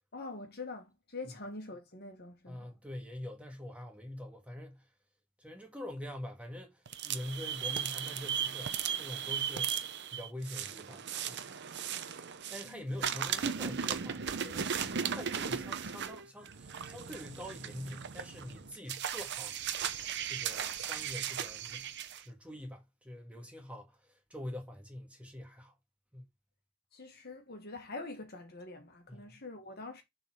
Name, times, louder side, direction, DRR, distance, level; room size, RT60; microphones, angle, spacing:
voice 1, 0.1-2.7 12.6-12.8 26.9-30.0, left 3 dB, 45° left, 1.6 m, -45 dB
voice 2, 2.5-4.9 5.4-11.5 12.5-19.7 20.2-21.9 22.2-25.7 26.1-26.3 29.1-29.4, left 1 dB, 5° right, 1.6 m, -45 dB
sound 1, 6.9-12.7 13.0-22.2, right 8 dB, 50° right, 0.7 m, -36 dB
7.1 x 4.0 x 4.7 m
head